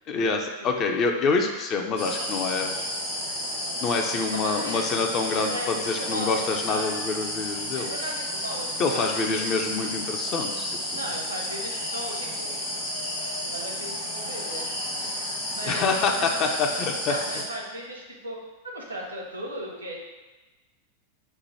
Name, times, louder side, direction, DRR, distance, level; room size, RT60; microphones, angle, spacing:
voice 1, 0.1-2.8 3.8-7.9 8.8-10.7 15.7-17.1, left 4 dB, 35° left, 3 dB, 0.5 m, -26 dB
sound 1, 2.0-17.4, left 1 dB, 65° left, 1.4 m, -32 dB
voice 2, 4.3-5.0 5.3-7.0 7.7-9.4 10.9-12.6 13.4-16.8 17.1-18.4 18.6-20.0, right 1 dB, 85° right, -1 dB, 0.9 m, -37 dB
4.7 x 2.2 x 4.3 m, 1.2 s
figure-of-eight pair, 90°, 0 cm